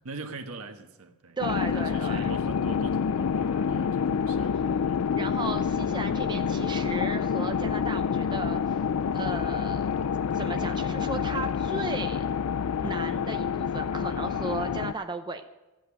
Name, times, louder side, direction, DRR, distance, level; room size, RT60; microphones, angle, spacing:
voice 1, 0.0-5.1, right 3 dB, 75° right, 5 dB, 1.4 m, -43 dB
sound 1, 1.4-14.9, left 6 dB, 70° left, 0.4 m, -28 dB
voice 2, 1.4-2.3 4.5-4.6 5.2-8.8 9.1-9.9 10.3-12.2 12.8-15.5, right 3 dB, 20° right, 5 dB, 0.7 m, -35 dB
15.5 x 9.1 x 6.3 m, 1.1 s
head